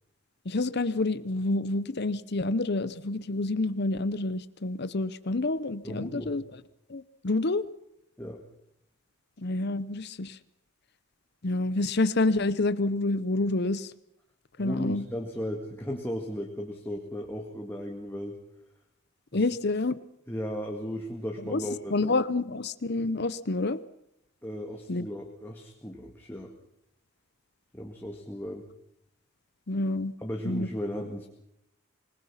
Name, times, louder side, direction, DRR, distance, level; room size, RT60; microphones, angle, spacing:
voice 1, 0.5-6.4 6.9-7.6 9.4-10.4 11.4-13.9 14.6-15.0 19.3-20.0 21.5-21.6 21.9-23.8 24.9-25.0 29.7-30.1 30.4-30.7, left 2 dB, 50° left, 15 dB, 0.8 m, -28 dB
voice 2, 5.8-6.3 8.2-8.4 14.6-18.4 19.3-19.5 20.3-22.1 24.4-26.5 27.7-28.6 30.2-31.3, equal, 10° left, 0 dB, 2.0 m, -36 dB
25.0 x 20.5 x 5.7 m, 0.79 s
head